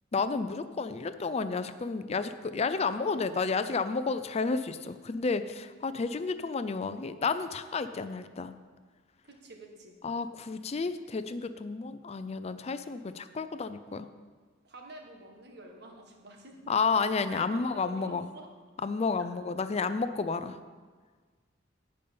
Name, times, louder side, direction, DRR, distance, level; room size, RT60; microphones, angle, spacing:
voice 1, 0.1-8.5 10.0-14.1 16.7-18.3 18.8-20.6, left 4 dB, 35° left, 11 dB, 0.4 m, -31 dB
voice 2, 9.2-10.0 14.6-18.5 19.2-19.3, right 2 dB, 60° right, 2 dB, 1.6 m, -48 dB
10.5 x 5.4 x 8.6 m, 1.5 s
head